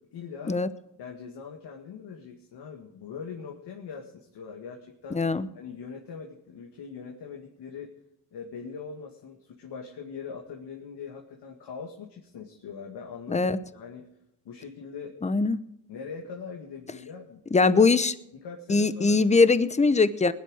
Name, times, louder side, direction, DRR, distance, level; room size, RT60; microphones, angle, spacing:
voice 1, 0.1-0.6 1.0-5.2 5.5-7.9 8.3-14.1 14.4-15.1 15.9-17.4 17.7-17.9 18.4-19.4, left 6 dB, 70° left, 1 dB, 2.3 m, -41 dB
voice 2, 5.1-5.5 13.3-13.6 15.2-15.6 17.5-18.1 18.7-20.3, left 4 dB, 15° left, 15 dB, 0.8 m, -21 dB
20.5 x 10.5 x 4.9 m, 0.85 s
cardioid pair, 95°, 42 cm